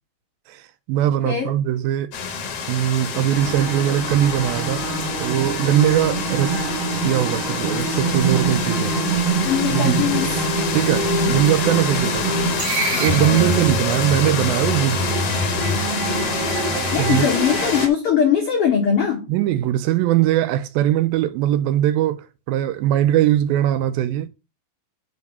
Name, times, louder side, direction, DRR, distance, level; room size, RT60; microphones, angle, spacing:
voice 1, 0.5-2.1 2.7-4.8 5.2-6.6 7.0-9.0 9.7-10.0 10.7-12.3 13.0-15.3 17.0-17.3 19.3-24.3, right 12 dB, 85° right, 2.3 m, -20 dB
sound 1, 2.1-17.9, left 6 dB, 65° left, 1.6 m, -27 dB
sound 2, 3.3-17.9, right 3 dB, 65° right, 1.8 m, -25 dB
voice 2, 9.4-10.4 12.9-13.6 16.9-19.3, left 8 dB, 90° left, 1.2 m, -21 dB
5.3 x 3.6 x 5.3 m
omnidirectional pair, 4.3 m